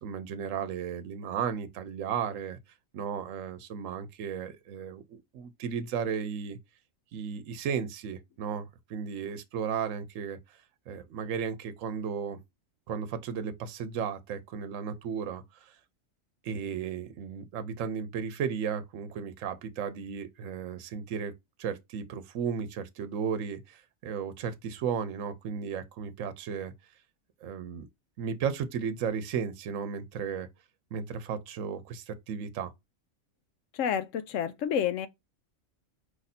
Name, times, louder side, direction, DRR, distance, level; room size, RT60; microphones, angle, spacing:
voice 1, 0.0-2.6 2.9-6.6 7.1-10.4 10.9-12.4 12.9-15.7 16.4-21.3 21.6-26.7 27.4-27.9 28.2-30.5 30.9-32.7, right 7 dB, 75° right, 1.1 m, -34 dB
voice 2, 33.7-35.1, left 8 dB, 75° left, 1.0 m, -29 dB
4.8 x 2.6 x 4.1 m
omnidirectional pair, 1.4 m